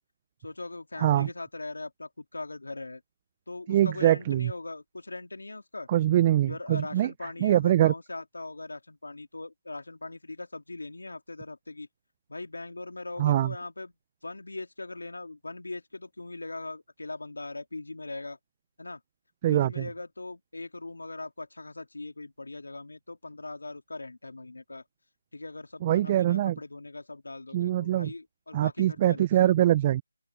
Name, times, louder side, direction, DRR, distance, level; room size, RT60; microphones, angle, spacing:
voice 1, 0.4-3.0 3.5-5.9 6.4-11.9 12.3-13.9 14.2-18.4 18.8-19.0 19.5-24.8 25.3-29.5, left 2 dB, 85° left, 2.8 m, -40 dB
voice 2, 3.7-4.5 5.9-7.1 7.4-7.9 13.2-13.5 19.4-19.9 25.8-26.5 27.5-28.1 28.5-30.0, right 13 dB, 20° right, 0.3 m, -23 dB
open air
figure-of-eight pair, 165°, 0 cm